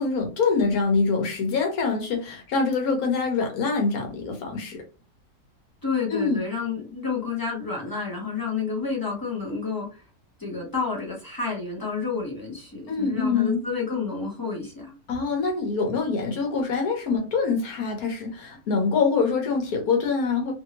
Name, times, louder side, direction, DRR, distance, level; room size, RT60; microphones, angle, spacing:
voice 1, 0.0-4.8 6.1-6.4 12.9-13.6 15.1-20.5, left 4 dB, 65° left, 1.2 m, -25 dB
voice 2, 5.8-10.0 10.4-14.9, left 5 dB, 20° left, 0.5 m, -30 dB
2.9 x 2.7 x 2.8 m
omnidirectional pair, 1.7 m